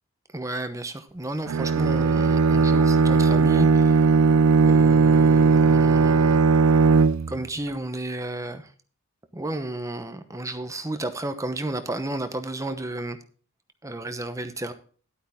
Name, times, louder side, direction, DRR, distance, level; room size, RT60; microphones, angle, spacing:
voice 1, 0.3-4.2 4.6-6.4 7.3-8.7 9.3-13.2 13.8-14.7, right 1 dB, 15° right, 8 dB, 0.9 m, -32 dB
Bowed string instrument, 1.5-7.4, right 4 dB, 85° right, 0.5 m, -18 dB
12.0 x 8.6 x 3.6 m, 0.41 s
head